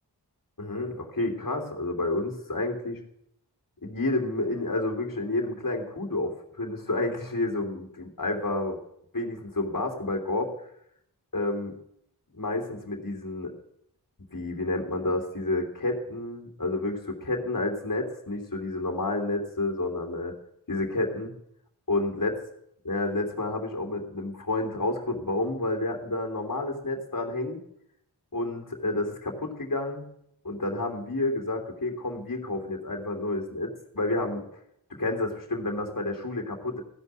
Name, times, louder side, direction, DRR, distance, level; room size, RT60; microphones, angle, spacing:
voice 1, 0.6-3.0 3.8-8.8 9.1-10.5 11.3-11.7 12.3-13.5 14.3-20.4 20.7-21.3 21.9-22.3 22.8-27.6 28.3-30.1 30.4-34.4 34.9-36.8, left 2 dB, 55° left, 1 dB, 3.1 m, -30 dB
16.0 x 5.4 x 9.4 m, 0.72 s
wide cardioid pair, 40°, 40 cm